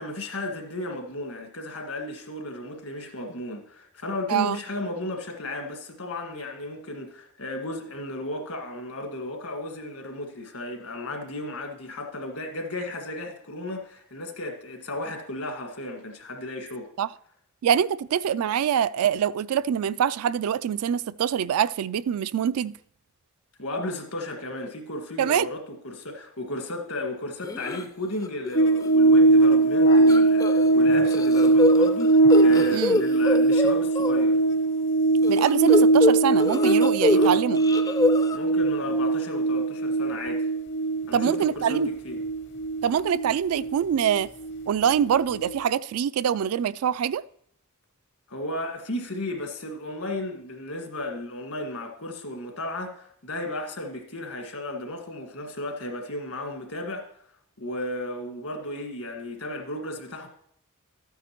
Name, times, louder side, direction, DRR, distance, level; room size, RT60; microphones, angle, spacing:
voice 1, 0.0-16.9 23.6-34.4 37.1-37.4 38.3-40.5 41.1-42.2 48.3-57.1 57.6-60.3, left 1 dB, 75° left, 1.8 m, -34 dB
voice 2, 17.6-22.7 25.2-25.5 32.7-33.0 35.3-37.6 41.1-41.9 42.8-44.3 44.7-47.2, right 8 dB, 80° right, 0.3 m, -24 dB
sound 1, 27.4-27.8 28.2-28.6 28.8-28.9 30.1-30.7 31.1-34.1 35.2-37.3 37.6-38.4, left 2 dB, 15° left, 0.4 m, -25 dB
sound 2, 28.5-45.1 45.4-45.5, right 2 dB, 55° left, 0.8 m, -21 dB
12.5 x 9.2 x 3.0 m
head